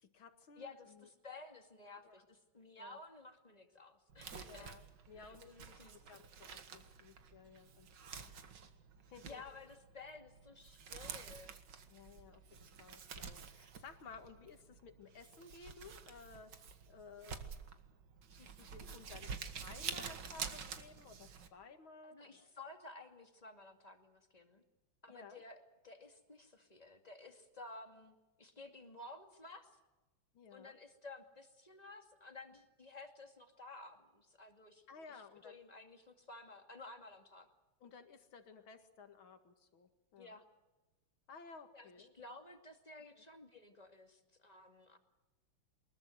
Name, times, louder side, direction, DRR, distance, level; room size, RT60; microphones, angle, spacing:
voice 1, 0.0-1.1 2.0-2.2 2.8-3.0 4.4-8.3 9.1-9.4 11.9-16.5 16.9-17.5 18.3-19.3 19.6-22.5 25.1-25.4 30.3-30.8 34.9-35.6 37.8-40.4 41.3-42.1 43.2-43.3, left 5 dB, 65° left, 7 dB, 2.8 m, -56 dB
voice 2, 0.6-4.7 5.1-6.0 9.2-11.6 22.0-24.6 25.0-29.7 30.5-34.9 35.4-37.5 40.2-40.5 41.7-45.0, left 2 dB, 20° left, 5 dB, 2.4 m, -54 dB
Crumpling crinkling, 4.1-21.5, right 6 dB, 55° right, 2.1 m, -49 dB
23.5 x 21.5 x 8.0 m, 1.1 s
omnidirectional pair, 2.4 m